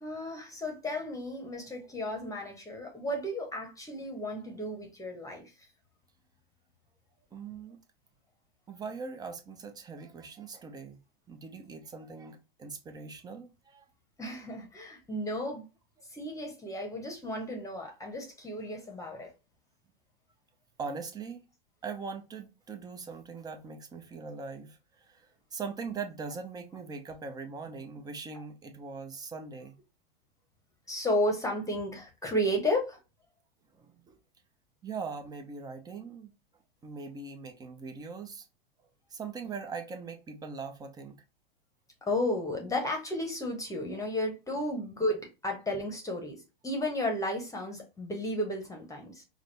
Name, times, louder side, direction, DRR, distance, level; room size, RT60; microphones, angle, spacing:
voice 1, 0.0-5.5 14.2-15.7 16.1-19.3 30.9-33.0 42.1-49.2, left 1 dB, 10° left, 0.9 m, -33 dB
voice 2, 7.3-7.8 8.7-11.0 11.3-13.8 20.8-21.4 21.8-29.7 33.7-34.2 34.8-36.3 36.8-38.5 39.1-41.2, right 5 dB, 15° right, 0.5 m, -41 dB
4.9 x 2.0 x 3.2 m
hypercardioid pair, 110°, 30 cm